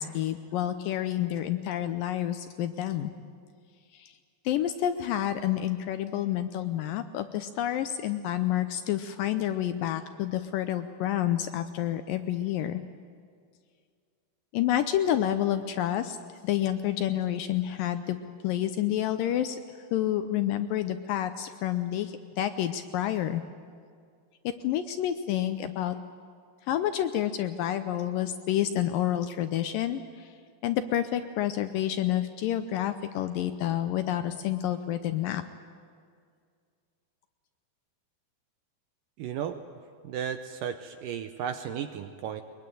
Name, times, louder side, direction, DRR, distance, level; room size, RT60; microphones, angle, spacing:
voice 1, 0.0-3.1 3.9-4.1 4.5-12.8 14.5-16.2 16.4-18.2 18.4-19.6 19.9-23.4 24.4-26.0 26.7-30.3 30.6-35.4, left 11 dB, 75° left, 10 dB, 2.1 m, -29 dB
voice 2, 39.2-39.6 40.0-42.4, right 8 dB, 75° right, 8 dB, 2.1 m, -34 dB
22.0 x 22.0 x 9.2 m, 2.1 s
omnidirectional pair, 4.5 m